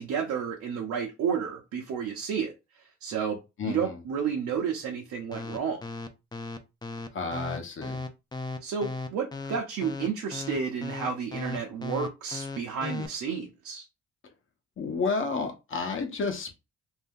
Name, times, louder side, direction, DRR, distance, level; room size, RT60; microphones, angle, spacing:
voice 1, 0.0-2.5 3.0-5.8 8.6-13.9, right 6 dB, 75° right, 0.7 m, -31 dB
voice 2, 3.6-3.9 7.1-8.0 14.8-16.6, left 4 dB, 40° left, 0.9 m, -31 dB
sound 1, 5.3-13.1, left 3 dB, 15° left, 0.4 m, -36 dB
2.7 x 2.2 x 3.5 m
cardioid pair, 90°, 30 cm